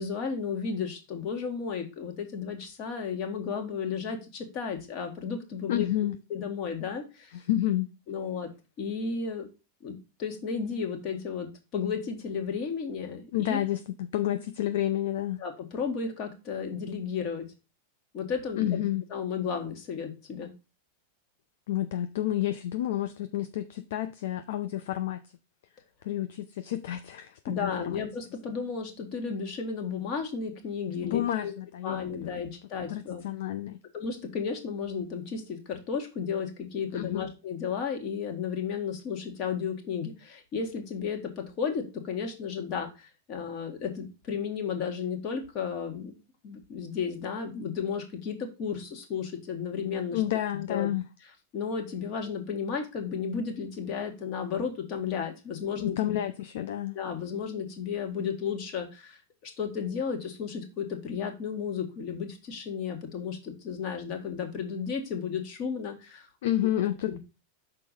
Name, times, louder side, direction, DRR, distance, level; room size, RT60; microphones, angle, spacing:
voice 1, 0.0-7.3 8.1-8.5 8.8-9.5 9.8-13.6 15.4-17.5 18.1-18.8 19.1-20.5 27.5-31.5 31.8-33.2 33.9-46.1 46.4-50.2 50.5-50.9 51.5-56.2 56.9-66.3 67.1-67.2, left 6 dB, 40° left, 1.8 m, -33 dB
voice 2, 5.7-6.2 7.3-7.9 13.3-15.4 18.6-19.0 21.7-25.2 26.0-28.0 31.0-32.5 32.9-33.8 36.9-37.3 50.1-51.1 55.8-57.0 66.4-67.2, left 12 dB, 55° left, 0.5 m, -30 dB
6.1 x 4.4 x 5.3 m
figure-of-eight pair, 90°, 0 cm